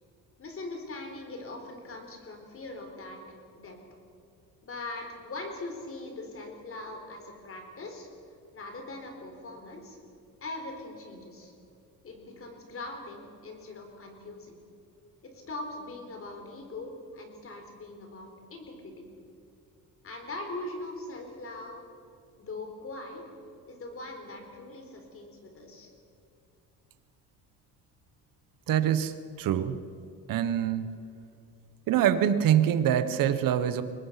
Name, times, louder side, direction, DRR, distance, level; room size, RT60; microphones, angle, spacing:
voice 1, 0.4-3.8 4.6-8.1 8.5-10.0 10.4-11.5 12.0-14.6 15.2-19.0 20.0-21.8 22.4-23.2 23.7-25.9, left 2 dB, 35° left, 4 dB, 4.4 m, -41 dB
voice 2, 28.7-29.8 30.3-30.9 31.9-33.8, right 10 dB, 65° right, 12 dB, 1.3 m, -25 dB
24.0 x 19.5 x 5.9 m, 2.5 s
cardioid pair, 120°, 36 cm